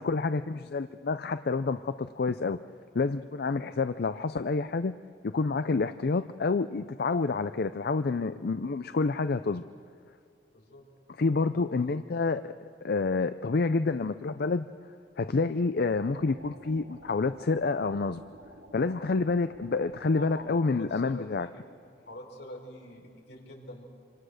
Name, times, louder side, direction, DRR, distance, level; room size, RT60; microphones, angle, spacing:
voice 1, 0.0-2.6 2.9-5.0 5.2-9.6 11.2-12.5 12.8-14.7 15.2-18.2 18.7-21.5, left 3 dB, 60° left, 11 dB, 0.5 m, -28 dB
voice 2, 10.5-10.9 11.5-11.9 20.2-21.6 22.1-23.8, left 1 dB, 80° left, 1 dB, 5.0 m, -45 dB
sound 1, 16.0-20.5, right 1 dB, 80° right, 4.1 m, -52 dB
27.5 x 25.0 x 6.5 m, 2.3 s
head